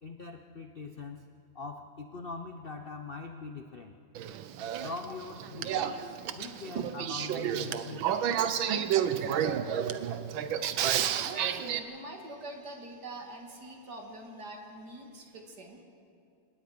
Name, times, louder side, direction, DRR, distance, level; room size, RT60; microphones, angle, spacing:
voice 1, 0.0-1.3 1.5-4.0 4.8-8.2, left 4 dB, 75° left, 6 dB, 0.5 m, -42 dB
Male speech man speaking / Female speech woman speaking / Conversation, 4.1-11.8, right 9 dB, 75° right, 1.6 m, -31 dB
voice 2, 10.9-15.8, right 1 dB, 50° right, 2 dB, 2.8 m, -44 dB
29.0 x 18.0 x 5.1 m, 2.4 s
omnidirectional pair, 2.2 m